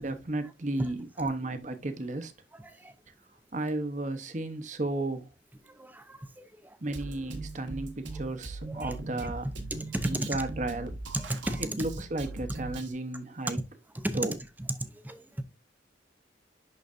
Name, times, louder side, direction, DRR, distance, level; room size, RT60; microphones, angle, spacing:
voice 1, 0.0-2.3 3.5-5.2 6.8-9.5 10.0-10.9 11.6-13.6 14.1-14.4, right 2 dB, 40° right, 0.8 m, -33 dB
voice 2, 5.8-6.8 8.7-8.9 9.7-10.3 11.1-11.7 13.9-14.2 15.0-15.2, right 1 dB, 10° right, 0.6 m, -34 dB
Drum kit, 6.9-12.9, right 2 dB, 75° right, 1.2 m, -40 dB
10.5 x 4.0 x 2.5 m
head